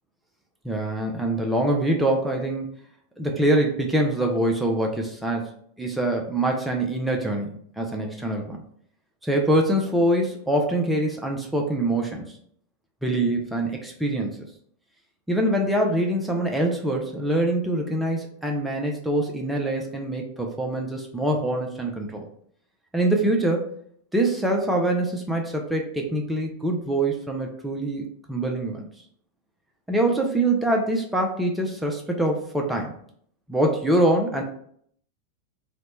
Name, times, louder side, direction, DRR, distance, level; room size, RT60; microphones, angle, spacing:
voice 1, 0.6-2.7 3.2-8.6 9.2-12.4 13.0-14.5 15.3-22.3 22.9-23.7 24.1-28.9 29.9-32.9 33.5-34.4, right 1 dB, 5° right, 1 dB, 0.4 m, -24 dB
2.9 x 2.1 x 3.1 m, 0.64 s
figure-of-eight pair, 90°, 0 cm